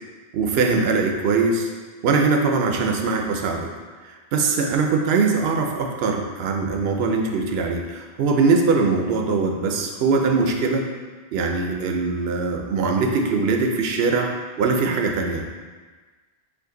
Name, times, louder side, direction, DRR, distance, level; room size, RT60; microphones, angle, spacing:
voice 1, 0.3-1.7 2.0-3.7 4.3-10.8 11.3-15.4, right 4 dB, 70° right, 2 dB, 0.8 m, -21 dB
5.1 x 2.5 x 3.7 m, 1.4 s
omnidirectional pair, 1.1 m